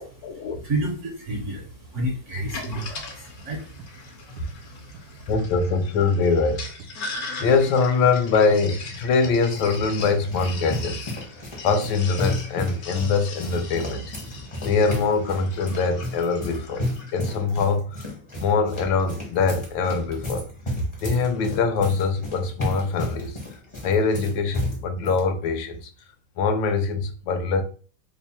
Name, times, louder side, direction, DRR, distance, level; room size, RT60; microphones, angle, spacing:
voice 1, 0.0-0.6 5.3-6.7 7.4-11.1 11.6-14.2 14.6-18.1 18.4-20.5 21.0-23.4 23.8-25.9 26.4-27.6, left 4 dB, 80° left, 1.4 m, -23 dB
voice 2, 0.6-5.3, right 1 dB, 55° right, 0.9 m, -31 dB
Sink (filling or washing), 2.3-17.3, left 3 dB, 60° left, 1.0 m, -39 dB
sound 1, 3.8-4.0 4.4-4.6 4.9-5.2 5.6-5.8 6.2-6.4 6.8-7.0 7.4-7.7 8.0-8.3 8.6-8.8 9.2-9.4 9.8-10.1 10.5-10.7 10.9-11.3 11.7-11.9 12.2-12.4 12.9-13.0 13.5-13.7 14.0-14.2 14.6-14.9 15.3-15.5 15.9-16.1 16.5-16.7 17.1-17.3 17.8-18.0 18.4-18.6 19.0-19.2, right 4 dB, 75° right, 1.3 m, -45 dB
sound 2, 9.1-25.2, left 1 dB, 30° left, 0.6 m, -33 dB
3.3 x 2.1 x 4.1 m
omnidirectional pair, 2.1 m